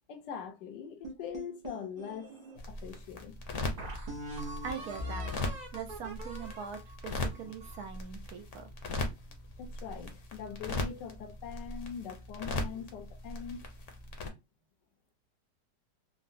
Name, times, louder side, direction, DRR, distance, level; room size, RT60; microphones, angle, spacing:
voice 1, 0.1-3.4 7.4-7.5 9.6-13.7, left 7 dB, 80° left, 1.2 m, -42 dB
sound 1, 1.0-2.6 3.2-3.3 3.8-8.0, equal, 45° right, 0.5 m, -42 dB
sound 2, 2.6-14.3, left 2 dB, 60° left, 0.9 m, -39 dB
voice 2, 4.6-5.3 5.7-8.7, right 6 dB, 70° right, 1.1 m, -42 dB
3.7 x 2.1 x 2.5 m
omnidirectional pair, 1.8 m